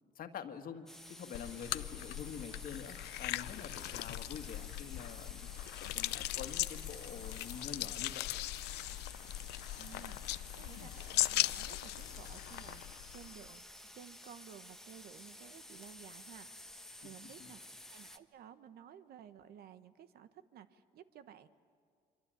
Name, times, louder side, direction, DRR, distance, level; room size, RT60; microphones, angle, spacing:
voice 1, 0.2-8.3 17.4-17.5, left 7 dB, 55° left, 7 dB, 1.9 m, -47 dB
sound 1, 0.9-18.2, left 1 dB, 5° left, 1.2 m, -53 dB
sound 2, 1.3-13.5, left 17 dB, 85° left, 0.6 m, -39 dB
voice 2, 9.8-13.7 13.9-16.5 17.0-21.5, right 9 dB, 65° right, 11 dB, 1.3 m, -55 dB
25.5 x 24.5 x 9.1 m, 2.2 s
cardioid pair, 110°, 17 cm